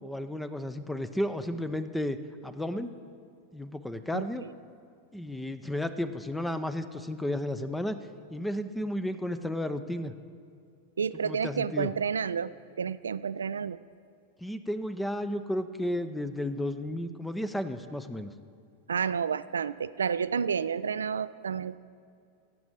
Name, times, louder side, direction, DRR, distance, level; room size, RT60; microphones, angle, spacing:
voice 1, 0.0-2.2 2.4-2.9 3.5-4.4 5.1-8.0 8.3-10.1 11.2-11.9 14.4-18.3, left 1 dB, 5° left, 11 dB, 0.6 m, -33 dB
voice 2, 11.0-13.8 18.9-21.8, right 6 dB, 70° right, 16 dB, 0.3 m, -30 dB
16.5 x 7.1 x 7.8 m, 2.4 s
figure-of-eight pair, 90°, 0 cm